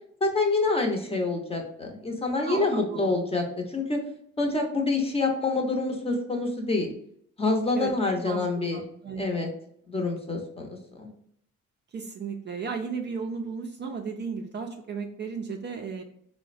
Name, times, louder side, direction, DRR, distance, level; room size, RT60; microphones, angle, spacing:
voice 1, 0.2-4.0 4.4-6.9 7.4-8.8 9.2-9.5 9.9-11.1, left 3 dB, 20° left, 2 dB, 0.7 m, -27 dB
voice 2, 2.4-3.2 7.7-7.9 8.2-8.4 8.7-9.5 11.9-16.0, right 5 dB, 35° right, 2 dB, 0.4 m, -34 dB
3.7 x 2.1 x 2.5 m, 0.68 s
cardioid pair, 90°, 30 cm